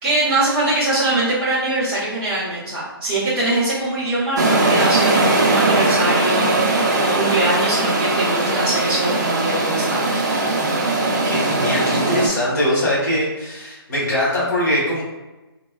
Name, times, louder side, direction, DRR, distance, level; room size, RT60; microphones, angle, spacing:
voice 1, 0.0-10.0, right 2 dB, 5° right, -13 dB, 0.7 m, -22 dB
sound 1, 4.4-12.3, right 2 dB, 45° right, 0.5 m, -19 dB
voice 2, 11.2-15.0, left 1 dB, 40° left, -8 dB, 1.4 m, -21 dB
3.1 x 2.2 x 2.3 m, 1.1 s
hypercardioid pair, 170°, 13 cm